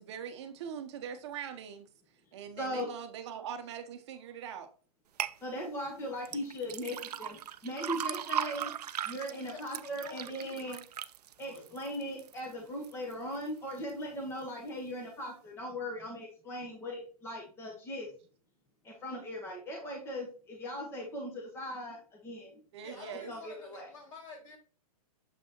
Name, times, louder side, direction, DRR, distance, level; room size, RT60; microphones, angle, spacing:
voice 1, 0.0-1.9 2.3-4.7 22.7-23.3, right 8 dB, 45° right, 0.8 m, -42 dB
voice 2, 2.6-2.9 5.4-8.7 9.0-10.8 11.4-18.1 18.8-22.6 23.3-23.9, equal, 10° left, 1.1 m, -39 dB
sound 1, 5.2-5.4 6.3-12.4 12.8-13.4 13.8-13.9, right 10 dB, 90° right, 0.5 m, -38 dB
voice 3, 9.4-10.8 11.4-11.7 22.8-24.6, left 3 dB, 60° left, 3.6 m, -49 dB
6.8 x 5.9 x 2.9 m
hypercardioid pair, 160°, 20 cm